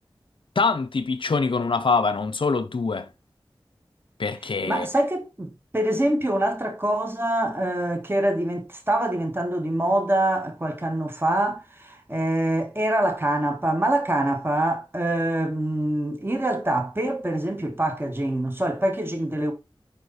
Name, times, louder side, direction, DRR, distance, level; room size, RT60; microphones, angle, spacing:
voice 1, 0.6-3.1 4.2-4.9, left 4 dB, 65° left, 0.5 m, -24 dB
voice 2, 4.7-19.5, right 1 dB, 25° right, 1.3 m, -25 dB
5.2 x 4.8 x 4.0 m
wide cardioid pair, 50°, 9 cm